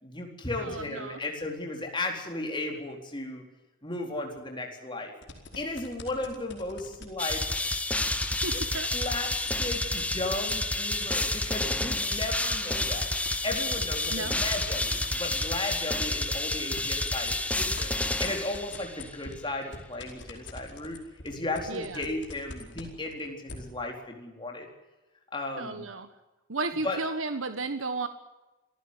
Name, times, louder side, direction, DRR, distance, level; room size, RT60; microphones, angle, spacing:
voice 1, 0.0-3.5 3.8-5.1 5.6-7.4 8.5-8.6 8.9-13.1 13.4-17.9 18.2-24.7 25.3-25.9 26.8-27.0, left 2 dB, 25° left, 2 dB, 4.2 m, -35 dB
voice 2, 0.6-1.2 8.4-8.9 14.1-14.4 21.7-22.0 25.6-26.1 26.5-28.1, right 3 dB, 85° right, 9 dB, 1.4 m, -33 dB
sound 1, 5.2-10.1 10.5-16.0 16.4-23.5, left 3 dB, 55° left, 4.9 m, -43 dB
sound 2, 7.2-19.1, left 2 dB, 5° left, 1.2 m, -30 dB
26.5 x 15.5 x 8.3 m, 1.1 s
head